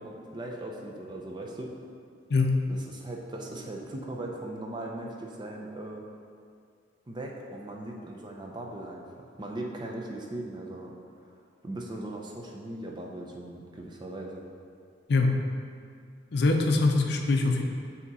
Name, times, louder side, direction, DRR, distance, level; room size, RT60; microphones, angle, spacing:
voice 1, 0.0-1.7 2.7-6.0 7.1-10.9 11.2-11.3 11.6-14.5, right 1 dB, 25° right, 0 dB, 0.5 m, -39 dB
voice 2, 2.3-2.6 15.1-15.4 16.3-17.6, left 3 dB, 60° left, 3 dB, 0.5 m, -23 dB
8.4 x 2.9 x 4.0 m, 2.2 s
head